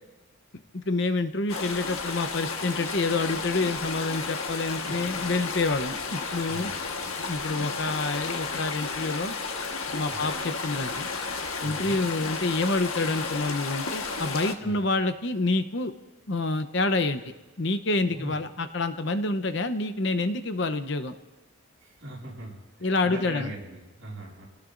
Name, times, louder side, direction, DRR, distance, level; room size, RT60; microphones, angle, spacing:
voice 1, 0.8-6.7 7.3-9.3 9.9-11.1 11.6-15.9 16.3-17.2 17.6-21.1 22.8-23.5, left 2 dB, 55° left, 10 dB, 0.8 m, -27 dB
sound 1, 1.5-14.6, left 4 dB, 85° left, 1.4 m, -33 dB
voice 2, 4.8-5.3 6.4-7.1 10.1-10.3 11.6-12.0 14.6-14.8 18.1-18.3 21.8-24.5, right 1 dB, 60° right, -4 dB, 7.2 m, -40 dB
28.0 x 18.5 x 2.6 m, 1.2 s
head